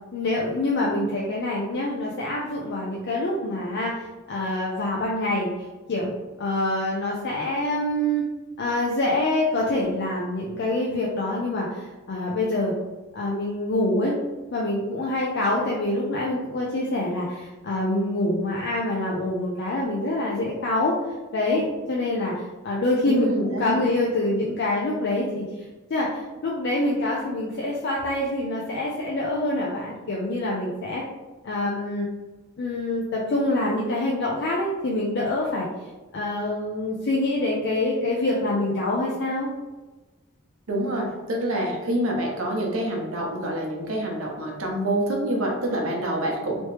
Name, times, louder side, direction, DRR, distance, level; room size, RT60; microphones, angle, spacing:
voice 1, 0.1-6.1 6.4-8.2 8.6-12.7 13.1-14.1 14.5-20.9 21.3-25.5 25.9-31.0 31.4-32.1 32.6-35.7 36.1-39.5, left 1 dB, 55° left, -3 dB, 0.5 m, -26 dB
voice 2, 23.1-23.9 40.7-46.6, right 1 dB, 85° right, -1 dB, 0.8 m, -26 dB
3.1 x 2.9 x 3.1 m, 1.2 s
head